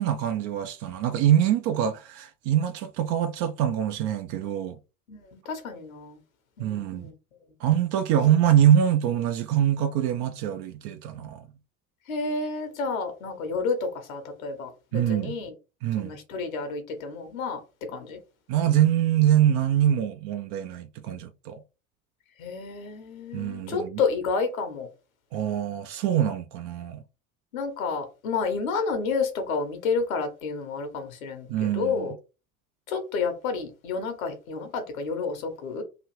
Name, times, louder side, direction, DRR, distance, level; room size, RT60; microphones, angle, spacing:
voice 1, 0.0-4.8 6.6-7.1 7.6-11.5 14.9-15.3 15.8-16.2 18.5-21.6 23.3-24.0 25.3-27.0 31.5-31.9, right 10 dB, 50° right, 0.4 m, -24 dB
voice 2, 5.1-6.2 6.6-7.1 8.2-8.4 12.1-15.5 16.0-17.6 17.9-18.2 22.4-24.9 27.5-32.1 32.9-35.8, left 4 dB, 75° left, 1.0 m, -30 dB
3.0 x 2.5 x 3.0 m
figure-of-eight pair, 65°, 42 cm